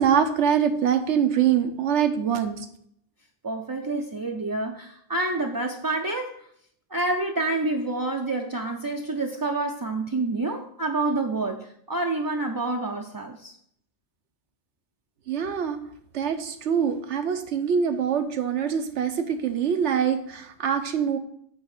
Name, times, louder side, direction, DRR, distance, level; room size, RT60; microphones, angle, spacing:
voice 1, 0.0-2.7 15.3-15.8 16.1-21.2, right 8 dB, 90° right, 8 dB, 1.2 m, -24 dB
voice 2, 3.4-6.4 6.9-13.5, right 2 dB, 30° right, 1 dB, 0.4 m, -28 dB
8.4 x 3.4 x 6.5 m, 0.67 s
omnidirectional pair, 1.2 m